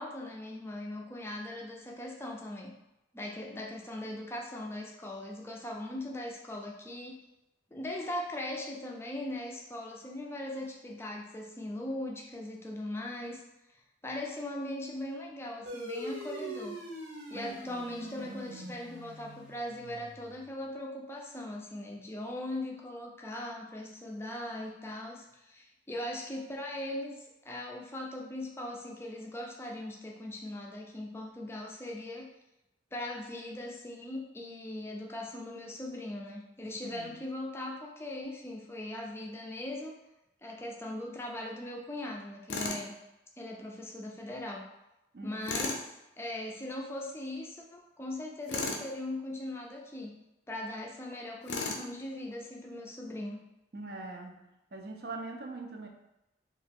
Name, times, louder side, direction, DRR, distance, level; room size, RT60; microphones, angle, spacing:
voice 1, 0.0-2.7 3.1-7.1 7.7-13.4 14.0-16.8 17.3-32.3 32.9-39.9 40.4-43.0 43.4-44.6 45.2-50.1 50.5-53.4, left 1 dB, 15° left, 0 dB, 0.4 m, -40 dB
sound 1, 15.7-20.5, right 1 dB, 85° right, 0.9 m, -43 dB
voice 2, 17.3-18.7 36.8-37.1 45.1-45.4 53.7-54.4 54.7-55.9, right 2 dB, 55° right, 2 dB, 0.5 m, -43 dB
Tools, 42.5-42.9 45.4-45.8 48.5-48.9 51.5-51.9, left 3 dB, 75° left, 0.5 m, -34 dB
3.0 x 2.4 x 3.4 m, 0.93 s
head